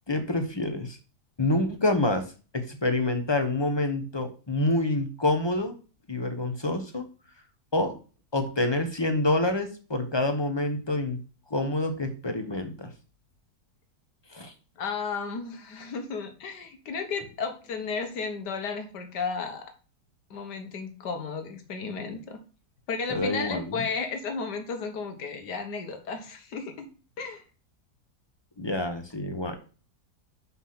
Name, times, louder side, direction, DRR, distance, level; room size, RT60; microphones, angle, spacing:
voice 1, 0.1-1.0 1.4-2.3 2.5-5.7 6.1-7.0 7.7-7.9 8.3-11.2 11.5-12.9 14.3-14.5 23.1-23.8 28.6-29.6, left 2 dB, 20° left, 7 dB, 0.9 m, -27 dB
voice 2, 14.8-19.7 20.3-22.4 22.9-26.9 27.2-27.4, left 5 dB, 85° left, 6 dB, 1.9 m, -33 dB
5.8 x 5.8 x 5.8 m, 0.36 s
omnidirectional pair, 1.7 m